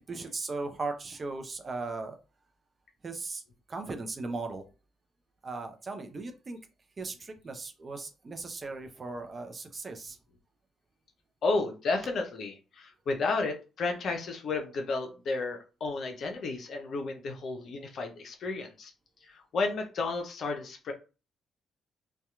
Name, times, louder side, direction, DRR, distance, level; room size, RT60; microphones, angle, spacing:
voice 1, 0.1-2.1 3.0-3.4 3.7-4.6 5.4-6.6 7.0-10.2, right 3 dB, 40° right, 6 dB, 0.6 m, -37 dB
voice 2, 11.4-18.9 19.2-20.9, left 3 dB, 55° left, 4 dB, 0.5 m, -32 dB
2.7 x 2.2 x 2.3 m, 0.33 s
hypercardioid pair, 40°, 0 cm